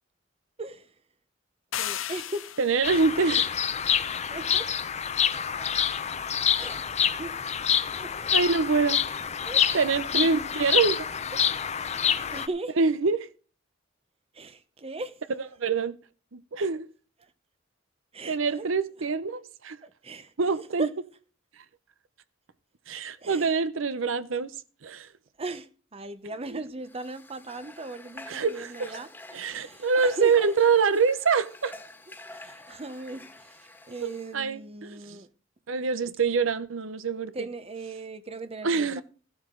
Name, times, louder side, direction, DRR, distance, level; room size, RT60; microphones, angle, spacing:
voice 1, 0.6-0.9 1.7-2.5 4.3-4.7 5.6-5.7 6.6-7.4 8.0-8.1 9.1-9.8 10.1-10.4 11.3-11.4 11.8-12.8 14.3-15.2 17.2-17.3 18.1-18.7 19.8-20.9 23.2-23.5 25.4-30.5 32.3-35.3 37.3-39.0, right 2 dB, 30° right, 0.8 m, -39 dB
sound 1, 1.7-3.0, left 11 dB, 90° left, 0.8 m, -34 dB
voice 2, 2.6-3.5 8.3-9.0 9.7-11.0 12.8-13.3 15.6-16.0 16.3-16.9 18.3-19.8 20.4-20.9 22.9-24.5 24.8-25.1 26.5-26.6 28.3-29.0 29.3-31.7 34.0-35.2 35.7-37.3 38.6-39.0, right 5 dB, 85° right, 0.7 m, -25 dB
Bird vocalization bird call bird song, 2.8-12.5, left 8 dB, 35° left, 0.7 m, -27 dB
Water / Water tap faucet, 26.8-34.4, left 2 dB, 10° left, 1.6 m, -47 dB
14.0 x 12.0 x 3.8 m
head